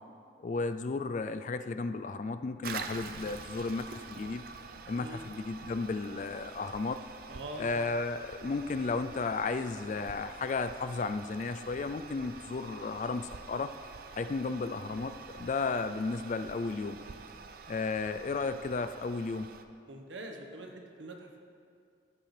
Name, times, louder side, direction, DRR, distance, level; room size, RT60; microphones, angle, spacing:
voice 1, 0.4-4.4 4.9-7.0 7.6-13.7 14.1-17.0 17.7-19.5, left 4 dB, 40° left, 10 dB, 0.3 m, -34 dB
Toilet flush, 2.6-19.6, right 5 dB, 50° right, 0.5 m, -47 dB
voice 2, 4.9-5.3 7.3-7.7 19.9-21.4, right 2 dB, 85° right, 2 dB, 1.2 m, -44 dB
13.5 x 9.1 x 3.3 m, 2.3 s
head